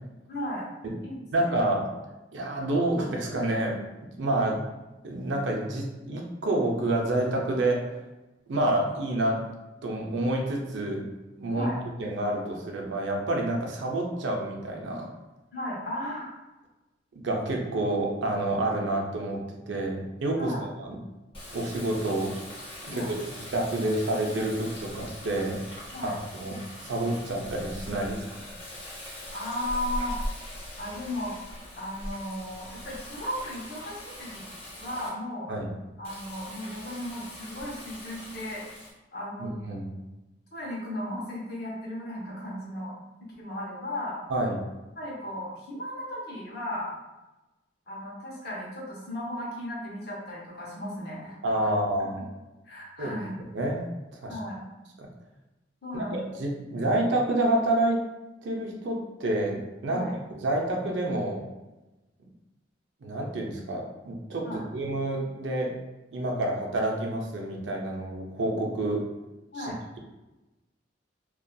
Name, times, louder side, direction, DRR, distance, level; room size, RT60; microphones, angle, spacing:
voice 1, 0.3-0.7 1.0-1.6 4.3-4.5 11.5-11.8 15.5-16.3 20.4-20.6 22.9-23.1 25.9-26.1 29.3-30.2 30.8-31.3 31.8-34.4 34.8-35.5 36.0-38.6 39.1-39.5 40.5-42.9 43.2-44.2 45.0-46.9 47.9-51.7 52.0-52.1 52.6-53.4 54.3-54.6 55.8-56.2 59.9-60.1 64.4-64.7 69.5-69.8, left 1 dB, 60° left, -5 dB, 0.8 m, -35 dB
voice 2, 1.3-1.9 2.3-3.8 4.2-4.6 5.0-7.9 8.5-9.4 9.8-11.1 11.4-11.7 12.0-15.1 17.1-19.4 19.7-21.0 21.5-22.3 22.8-25.6 26.0-26.6 26.8-28.5 35.5-35.7 39.4-39.9 44.3-44.6 51.4-52.3 53.0-53.2 53.5-53.8 54.2-54.3 55.0-55.1 55.9-58.0 58.4-61.5 63.0-65.7 66.1-69.0 69.6-70.0, right 1 dB, 75° right, 1 dB, 0.5 m, -28 dB
Water tap faucet, 21.3-35.1 36.0-38.9, left 1 dB, 30° left, 0.7 m, -41 dB
2.6 x 2.3 x 2.2 m, 1.1 s
head